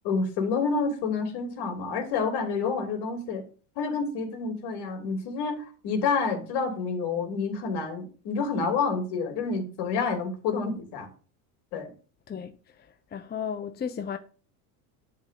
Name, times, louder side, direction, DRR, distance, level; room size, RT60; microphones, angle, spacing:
voice 1, 0.0-3.4 3.8-5.6 5.8-11.1 11.7-11.9, left 4 dB, 65° left, 3.0 m, -28 dB
voice 2, 13.1-14.2, left 7 dB, 20° left, 0.7 m, -33 dB
10.5 x 3.8 x 6.8 m
supercardioid pair, 110°, 43 cm